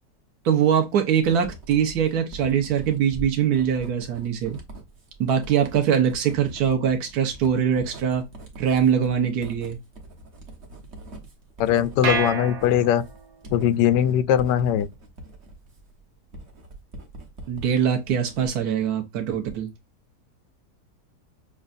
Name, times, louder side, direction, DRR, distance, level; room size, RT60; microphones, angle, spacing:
voice 1, 0.4-4.6 5.2-8.3 8.6-9.8 17.5-19.7, right 8 dB, 65° right, 1.4 m, -22 dB
Writing, 1.2-17.7 18.1-18.8, right 2 dB, 45° right, 1.3 m, -42 dB
voice 2, 11.6-13.0 13.5-14.9, left 10 dB, 85° left, 1.2 m, -20 dB
sound 1, 12.0-13.4, right 5 dB, 90° right, 1.5 m, -29 dB
6.3 x 2.3 x 2.5 m
omnidirectional pair, 1.8 m